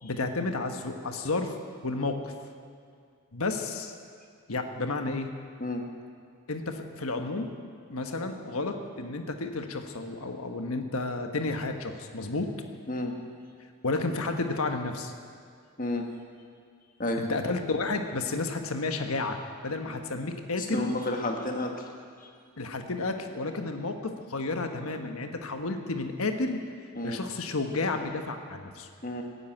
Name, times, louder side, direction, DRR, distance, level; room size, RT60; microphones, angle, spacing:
voice 1, 0.0-1.6 1.8-2.3 3.3-3.9 4.5-5.3 6.5-7.5 7.9-12.5 13.8-15.1 17.2-19.4 19.6-20.9 22.6-26.6 27.0-28.9, left 3 dB, 80° left, 5 dB, 1.3 m, -31 dB
voice 2, 20.6-21.9 22.2-22.3 26.9-27.2 29.0-29.2, left 1 dB, 40° left, 2 dB, 1.7 m, -31 dB
16.0 x 9.8 x 9.0 m, 2.2 s
head